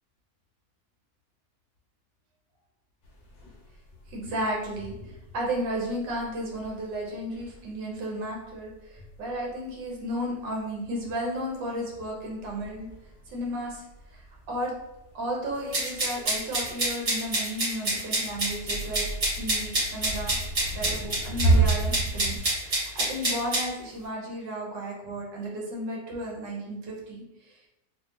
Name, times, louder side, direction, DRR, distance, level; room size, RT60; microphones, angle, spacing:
sound 1, 3.0-22.4, right 2 dB, 60° left, 0.7 m, -33 dB
voice 1, 4.1-12.9 13.3-13.8 14.1-14.7 15.1-19.0 19.4-20.3 20.7-27.7, equal, 70° right, -2 dB, 1.5 m, -33 dB
sound 2, 15.7-23.6, right 1 dB, 45° right, 1.8 m, -27 dB
3.4 x 2.5 x 2.8 m, 0.91 s
omnidirectional pair, 2.0 m